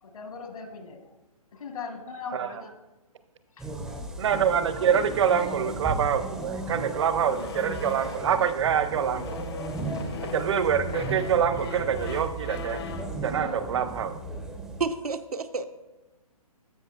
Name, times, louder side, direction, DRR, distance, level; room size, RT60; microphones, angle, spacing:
voice 1, 0.0-1.0 1.5-2.7 3.6-4.0, left 5 dB, 65° left, 5 dB, 1.2 m, -39 dB
sound 1, 3.6-14.9, right 2 dB, ahead, 0.4 m, -36 dB
sound 2, 4.2-8.4 8.9-13.2, left 6 dB, 45° left, 0.6 m, -41 dB
voice 2, 4.2-9.2 10.3-12.8 13.2-14.1, right 8 dB, 50° right, 11 dB, 0.6 m, -25 dB
voice 3, 14.8-15.7, right 4 dB, 90° right, 9 dB, 0.6 m, -30 dB
13.5 x 5.4 x 2.3 m, 1.1 s
figure-of-eight pair, 140°, 19 cm